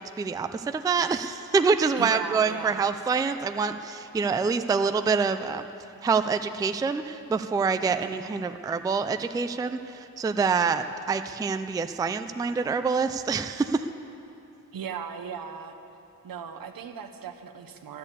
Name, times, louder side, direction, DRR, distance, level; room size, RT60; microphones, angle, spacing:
voice 1, 0.0-5.6 6.0-13.8, right 5 dB, 10° right, 9 dB, 0.3 m, -26 dB
voice 2, 2.0-2.8 14.7-15.7 16.2-18.0, right 7 dB, 75° right, 6 dB, 1.1 m, -37 dB
12.5 x 10.5 x 8.3 m, 2.7 s
wide cardioid pair, 155°, 35 cm